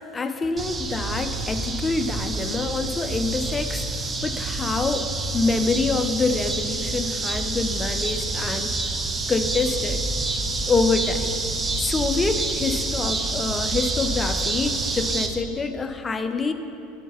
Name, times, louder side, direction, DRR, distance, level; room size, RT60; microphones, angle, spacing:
voice 1, 0.1-9.0 9.3-11.4 11.8-16.5, left 4 dB, 20° left, 8 dB, 0.5 m, -26 dB
sound 1, 0.6-15.3, right 3 dB, 20° right, 0.7 m, -27 dB
9.0 x 4.6 x 5.5 m, 2.7 s
figure-of-eight pair, 70°, 0 cm